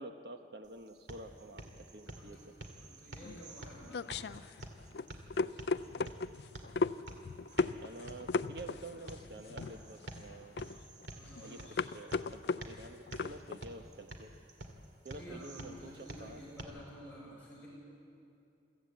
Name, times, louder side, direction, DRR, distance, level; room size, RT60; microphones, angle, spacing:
voice 1, 0.0-2.4 7.8-10.6 11.4-14.4 15.0-16.4, right 2 dB, 65° right, 7 dB, 1.1 m, -49 dB
sound 1, 0.6-16.6, right 1 dB, 90° right, 2.3 m, -50 dB
voice 2, 2.8-4.1 11.1-11.9 15.1-17.7, equal, 10° left, -8 dB, 6.6 m, -51 dB
sound 2, 3.2-13.6, left 4 dB, 65° left, 0.4 m, -37 dB
23.5 x 14.5 x 8.4 m, 2.7 s
head